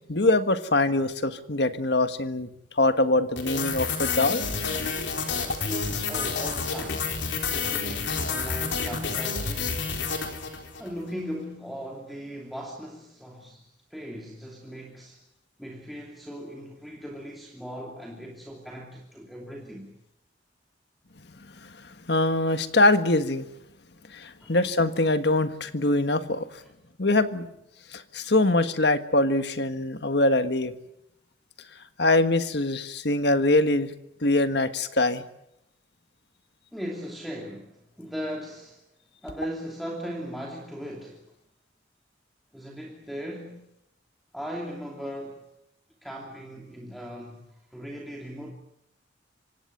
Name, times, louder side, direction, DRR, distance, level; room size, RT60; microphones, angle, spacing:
voice 1, 0.1-2.5 2.8-4.4 22.1-23.5 24.1-26.5 27.0-27.5 27.9-30.7 32.0-33.9 34.2-35.2, left 2 dB, 60° left, 10 dB, 1.6 m, -23 dB
sound 1, 3.4-10.9, left 5 dB, 75° left, 4.1 m, -29 dB
voice 2, 5.6-9.9 10.8-15.2 15.6-19.9 24.4-24.6 36.7-38.8 39.2-41.3 42.5-43.6 44.3-45.4 46.0-48.5, equal, ahead, 0 dB, 2.8 m, -38 dB
25.5 x 18.5 x 9.6 m, 0.84 s
head